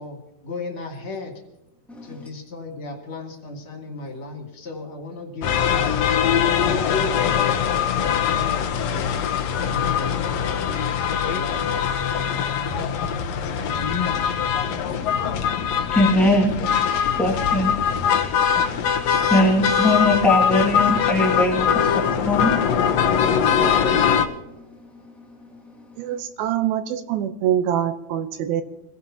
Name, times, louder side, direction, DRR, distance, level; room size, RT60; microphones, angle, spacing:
voice 1, 0.0-1.4 2.0-6.0 6.4-7.3 7.9-9.2 9.6-10.4 11.2-11.9 12.5-14.0 17.0-17.3, left 2 dB, 40° left, 1 dB, 2.7 m, -36 dB
sound 1, 5.4-24.3, left 8 dB, 80° left, 1.5 m, -22 dB
voice 2, 15.0-21.7 21.9-22.6, left 1 dB, ahead, -3 dB, 0.5 m, -22 dB
voice 3, 26.0-28.6, right 10 dB, 80° right, 9 dB, 2.7 m, -24 dB
27.0 x 16.5 x 2.9 m, 0.94 s
omnidirectional pair, 4.4 m